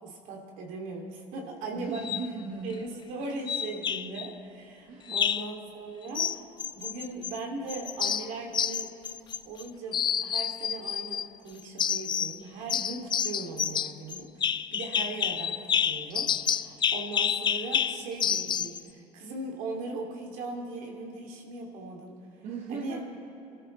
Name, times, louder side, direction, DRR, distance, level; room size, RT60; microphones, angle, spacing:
voice 1, 0.0-2.0 2.6-6.4 6.7-8.9 9.4-23.0, right 3 dB, 70° right, 0 dB, 2.8 m, -39 dB
voice 2, 1.7-3.0 4.8-5.2 22.4-23.1, right 4 dB, 55° right, -1 dB, 1.5 m, -37 dB
sound 1, 1.9-2.3 3.5-4.3 5.1-5.5 6.1-7.4 7.7-9.6 9.9-11.3 11.8-12.4 12.7-18.8, left 8 dB, 35° left, 0.4 m, -29 dB
26.5 x 13.0 x 3.3 m, 2.7 s
hypercardioid pair, 75°, 14 cm